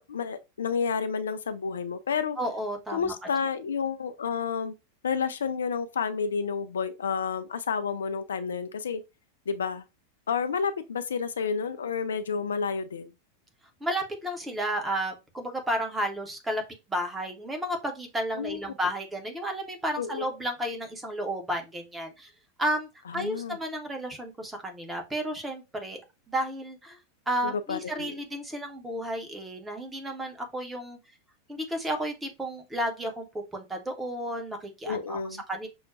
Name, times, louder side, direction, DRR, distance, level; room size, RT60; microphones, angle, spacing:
voice 1, 0.0-2.4 2.9-4.7 5.0-9.0 9.5-9.8 10.3-13.1 18.3-18.6 20.0-20.2 23.1-23.6 27.4-28.2 34.9-35.4, left 6 dB, 65° left, 0.3 m, -30 dB
voice 2, 2.4-3.1 13.8-16.6 16.9-22.3 22.6-26.0 26.3-27.0 27.3-31.0 31.5-35.2 35.5-35.7, right 1 dB, 10° right, 0.8 m, -32 dB
6.1 x 2.1 x 2.4 m
figure-of-eight pair, 90°, 0 cm